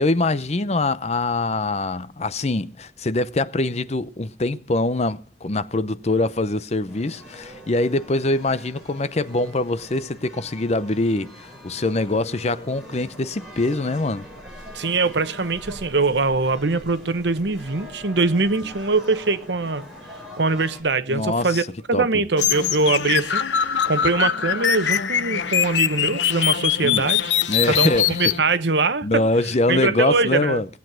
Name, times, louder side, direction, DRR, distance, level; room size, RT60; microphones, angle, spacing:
voice 1, 0.0-11.3 11.6-14.3 21.1-21.7 21.9-22.1 26.8-27.0 27.5-28.2 29.0-30.7, left 2 dB, 40° left, 0.7 m, -23 dB
sound 1, 6.9-20.8, equal, 5° right, 7.7 m, -43 dB
voice 2, 14.7-19.8 20.4-23.5 23.9-27.3 27.7-29.2 29.7-30.6, right 3 dB, 75° right, 1.0 m, -22 dB
sound 2, 22.4-28.4, left 9 dB, 90° left, 0.8 m, -22 dB
19.5 x 8.3 x 6.2 m
head